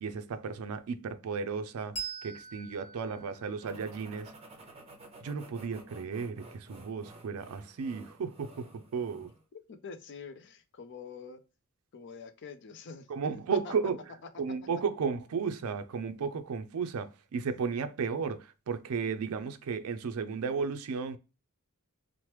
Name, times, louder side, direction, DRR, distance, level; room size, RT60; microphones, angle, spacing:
voice 1, 0.0-4.3 5.2-9.3 13.1-14.0 14.4-21.2, right 5 dB, 75° right, 0.4 m, -34 dB
Bell, 1.9-5.0, right 5 dB, 30° left, 1.1 m, -44 dB
sound 1, 3.6-9.4, right 2 dB, 25° right, 0.6 m, -52 dB
voice 2, 9.5-11.4 11.9-13.1 13.6-13.7, left 5 dB, 55° left, 0.4 m, -46 dB
3.0 x 2.0 x 3.1 m
head